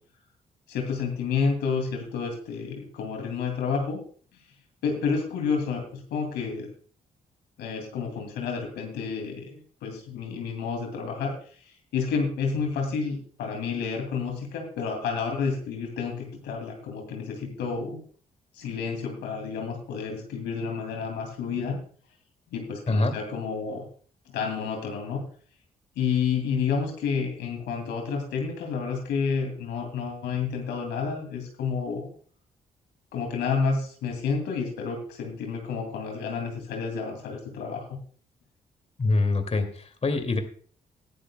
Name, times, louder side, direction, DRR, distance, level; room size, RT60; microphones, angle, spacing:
voice 1, 0.7-4.0 4.8-6.7 7.6-11.3 11.9-18.0 18.5-21.8 22.5-23.8 24.3-25.2 26.0-32.1 33.1-38.0, left 5 dB, 80° left, 3 dB, 2.5 m, -30 dB
voice 2, 39.0-40.4, left 3 dB, 40° left, 7 dB, 2.3 m, -24 dB
19.0 x 11.5 x 2.2 m, 0.44 s
supercardioid pair, 45°, 17 cm